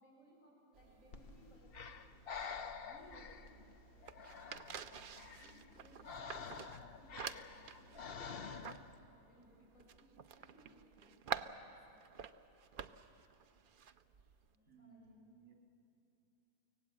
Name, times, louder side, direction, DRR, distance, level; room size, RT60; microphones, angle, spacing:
voice 1, 0.0-2.0 2.4-4.5 4.8-8.8 9.0-11.2 11.9-12.1 14.5-15.2, equal, 70° left, -4 dB, 7.1 m, -65 dB
sound 1, 0.7-14.5, right 7 dB, 50° right, 0.6 m, -50 dB
Breathing, 1.1-9.0, left 5 dB, 50° left, 1.0 m, -49 dB
voice 2, 14.7-15.5, right 4 dB, 70° right, 1 dB, 3.2 m, -61 dB
24.0 x 17.5 x 8.9 m, 2.9 s
omnidirectional pair, 1.4 m